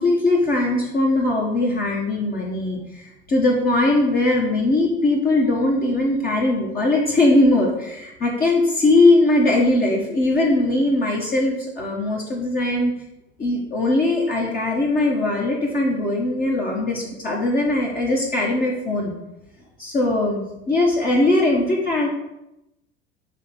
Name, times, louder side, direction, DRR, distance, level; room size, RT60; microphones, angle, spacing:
voice 1, 0.0-12.9 13.4-19.1 19.8-22.1, left 2 dB, 30° left, -3 dB, 1.4 m, -20 dB
6.4 x 3.3 x 5.8 m, 0.89 s
hypercardioid pair, 75°, 29 cm